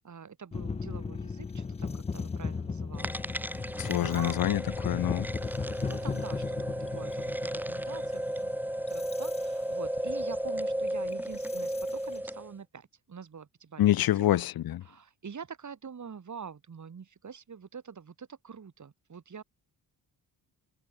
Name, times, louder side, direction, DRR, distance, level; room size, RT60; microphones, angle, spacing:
voice 1, 0.0-3.5 3.8-4.4 5.4-8.5 8.9-14.4 14.8-19.4, right 6 dB, 45° right, 3.5 m, -46 dB
sound 1, 0.5-12.2, left 5 dB, 15° left, 0.4 m, -37 dB
sound 2, 3.0-12.5, right 1 dB, 5° right, 2.3 m, -34 dB
voice 2, 3.8-5.3 13.8-14.8, left 13 dB, 60° left, 0.6 m, -26 dB
cardioid pair, 75°, 40 cm